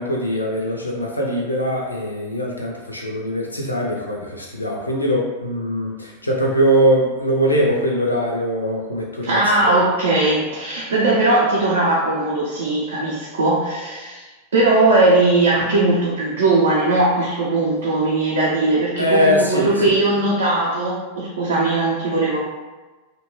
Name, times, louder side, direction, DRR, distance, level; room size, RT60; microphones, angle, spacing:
voice 1, 0.0-9.8 19.0-19.9, equal, 80° left, -1 dB, 0.4 m, -21 dB
voice 2, 9.2-14.3 14.5-22.4, right 2 dB, 65° right, -5 dB, 0.5 m, -19 dB
2.7 x 2.1 x 3.0 m, 1.2 s
figure-of-eight pair, 90°, 0 cm